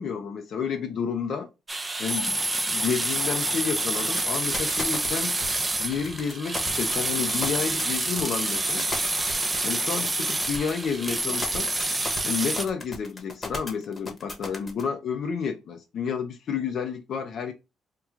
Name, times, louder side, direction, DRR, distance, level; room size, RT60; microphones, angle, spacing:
voice 1, 0.0-1.5 2.0-5.4 5.8-8.9 9.6-11.7 12.2-17.5, left 6 dB, 65° left, 0.5 m, -30 dB
sound 1, 1.7-12.6, right 2 dB, 20° right, 0.4 m, -27 dB
sound 2, 3.9-14.8, left 3 dB, 35° left, 1.0 m, -36 dB
3.0 x 2.2 x 3.5 m
cardioid pair, 90°, 0 cm